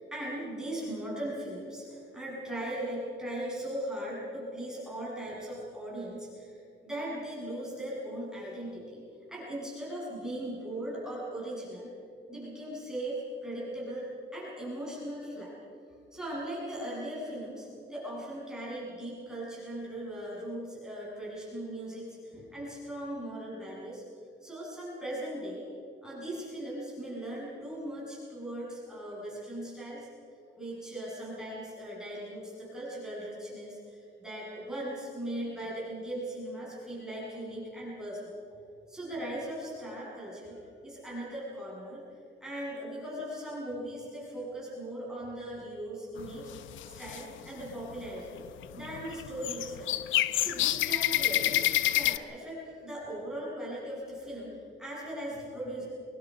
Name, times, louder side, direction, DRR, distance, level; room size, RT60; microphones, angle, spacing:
voice 1, 0.0-9.0 9.3-11.9 12.3-15.5 16.1-24.0 24.4-25.7 26.0-30.1 30.6-38.4 38.9-42.0 42.4-46.5 46.8-48.4 48.7-50.0 50.4-55.8, right 1 dB, 5° right, -7 dB, 7.7 m, -39 dB
sound 1, 46.2-47.2 47.7-48.1 48.4-52.2, left 14 dB, 85° left, 0.7 m, -28 dB
23.5 x 23.0 x 5.5 m, 2.5 s
cardioid pair, 140°, 20 cm